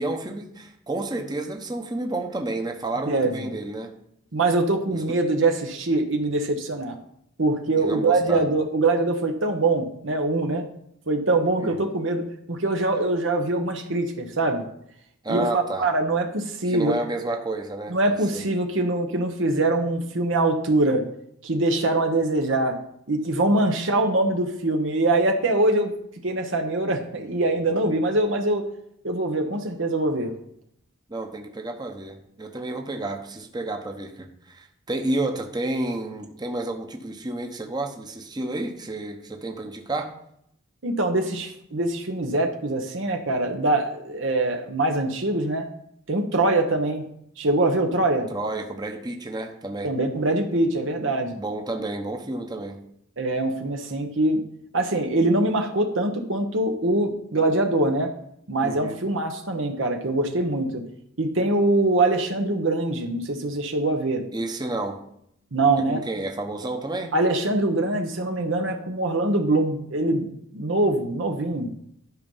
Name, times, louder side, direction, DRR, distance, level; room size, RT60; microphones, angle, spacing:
voice 1, 0.0-3.9 4.9-5.0 7.8-8.4 11.6-11.8 15.2-15.9 16.6-18.4 31.1-40.1 48.3-50.0 51.4-52.8 58.6-59.0 64.3-65.0 65.8-67.1, right 2 dB, 20° right, 4 dB, 1.0 m, -30 dB
voice 2, 3.1-3.5 4.3-7.0 7.4-10.6 11.1-12.2 12.5-14.7 15.3-16.9 17.9-21.0 21.4-22.7 23.1-25.9 26.2-28.6 29.0-30.3 40.8-45.7 46.1-47.0 47.4-48.3 49.8-51.4 53.2-54.4 54.7-58.1 58.5-60.8 61.2-64.2 65.5-66.0 67.1-71.7, right 2 dB, 65° right, 4 dB, 1.1 m, -23 dB
12.0 x 5.4 x 5.5 m, 0.73 s
head